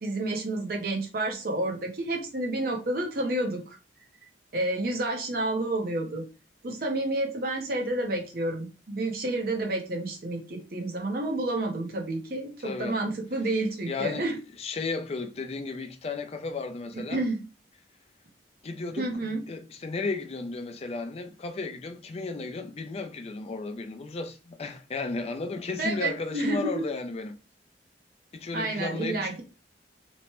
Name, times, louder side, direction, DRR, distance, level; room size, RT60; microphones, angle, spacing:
voice 1, 0.0-3.8 4.5-6.2 6.6-14.4 16.9-17.4 19.0-19.4 25.8-26.9 28.5-29.4, right 2 dB, 55° right, 0.7 m, -30 dB
voice 2, 12.6-13.0 13.9-14.3 14.6-17.2 18.6-27.4 28.3-29.4, left 3 dB, 35° left, 0.4 m, -34 dB
3.0 x 2.1 x 2.9 m
head